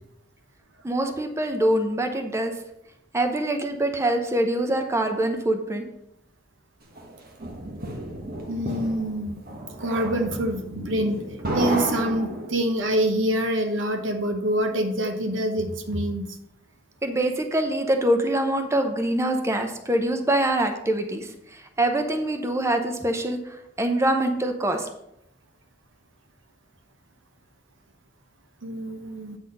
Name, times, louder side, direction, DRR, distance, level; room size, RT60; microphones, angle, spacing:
voice 1, 0.8-2.5 3.1-5.8 17.0-24.9, right 1 dB, 15° right, 5 dB, 0.7 m, -24 dB
sound 1, 7.0-12.8, right 1 dB, 50° right, 1.2 m, -32 dB
voice 2, 8.5-9.4 9.8-11.2 11.5-16.3 28.6-29.4, right 1 dB, 80° right, 5 dB, 1.0 m, -26 dB
8.4 x 4.1 x 5.3 m, 0.80 s
head